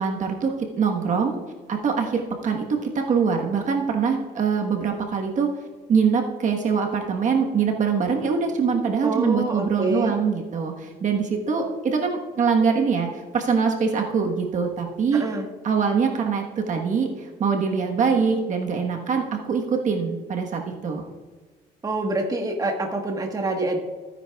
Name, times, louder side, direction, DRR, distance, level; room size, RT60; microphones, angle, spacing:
voice 1, 0.0-1.3 1.7-5.5 5.9-15.2 15.6-21.1, right 5 dB, 45° right, 2 dB, 1.3 m, -23 dB
voice 2, 9.0-10.1 15.1-15.5 21.8-23.8, right 2 dB, 20° right, 2 dB, 1.4 m, -26 dB
15.5 x 9.7 x 2.4 m, 1.4 s
cardioid pair, 110°, 17 cm